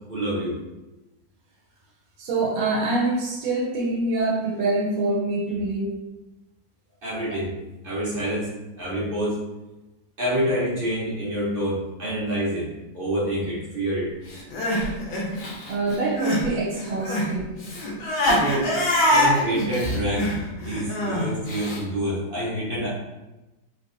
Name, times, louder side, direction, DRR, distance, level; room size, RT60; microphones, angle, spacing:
voice 1, 0.1-0.6 7.0-7.5 7.8-8.5 8.8-9.4 10.2-12.7 12.9-14.1 18.3-18.7 19.1-22.9, right 1 dB, 40° right, -7 dB, 0.8 m, -27 dB
voice 2, 2.2-6.1 15.7-17.6, right 2 dB, 85° right, -2 dB, 1.3 m, -25 dB
Crying sobbing, 14.3-16.5 16.7-21.8, left 1 dB, 65° left, 1.1 m, -24 dB
3.2 x 2.6 x 2.5 m, 1.0 s
omnidirectional pair, 2.0 m